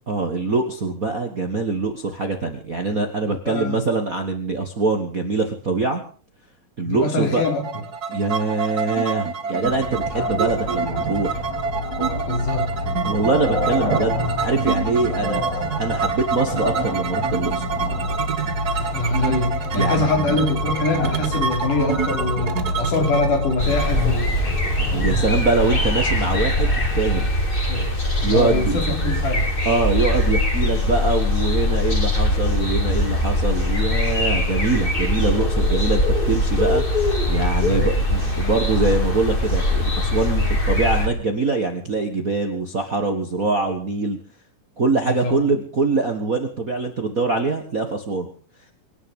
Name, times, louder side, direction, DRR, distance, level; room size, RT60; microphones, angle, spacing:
voice 1, 0.1-6.0 6.8-7.4 8.1-11.5 13.0-17.7 19.7-20.1 24.9-27.3 28.2-28.8 29.6-36.8 37.3-44.2 44.8-48.3, right 3 dB, 40° right, 4 dB, 1.3 m, -23 dB
voice 2, 3.2-3.8 6.8-7.6 12.2-12.7 18.9-24.3 27.7-27.9 28.2-29.5 37.6-37.9 45.1-45.4, left 3 dB, 70° left, 3 dB, 4.9 m, -24 dB
sound 1, 7.4-25.1, right 6 dB, 80° right, 0.8 m, -27 dB
sound 2, 9.7-26.9, left 2 dB, 50° left, 5.5 m, -28 dB
sound 3, 23.6-41.1, left 1 dB, 15° left, 2.3 m, -22 dB
24.5 x 10.5 x 5.4 m, 0.41 s
omnidirectional pair, 3.8 m